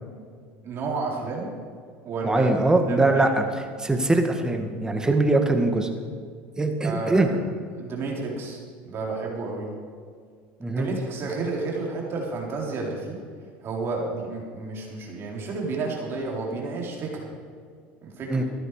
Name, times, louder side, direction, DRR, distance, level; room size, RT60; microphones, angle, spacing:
voice 1, 0.6-1.5 2.0-2.5 2.9-3.2 6.8-7.4 7.7-8.6 8.9-9.7 10.7-13.2 13.6-17.3 18.0-18.4, right 3 dB, 45° right, -1 dB, 3.9 m, -31 dB
voice 2, 2.2-3.3 3.8-5.9 6.6-7.3 10.6-10.9 18.3-18.4, right 2 dB, 10° right, 5 dB, 1.9 m, -22 dB
14.5 x 12.5 x 5.1 m, 2.1 s
supercardioid pair, 95°, 6 cm